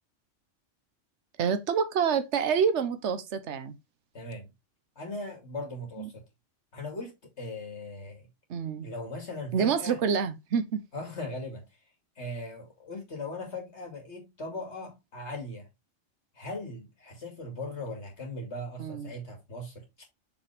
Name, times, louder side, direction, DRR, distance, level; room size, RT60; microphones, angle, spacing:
voice 1, 1.4-3.8 6.0-6.1 8.5-8.9 9.5-10.8 18.8-19.1, right 6 dB, 65° right, 1.2 m, -27 dB
voice 2, 4.1-4.5 5.0-6.2 6.7-8.3 8.8-10.0 10.9-11.6 12.2-15.7 16.3-20.1, left 2 dB, 60° left, 3.0 m, -39 dB
6.7 x 5.4 x 3.5 m
omnidirectional pair, 1.3 m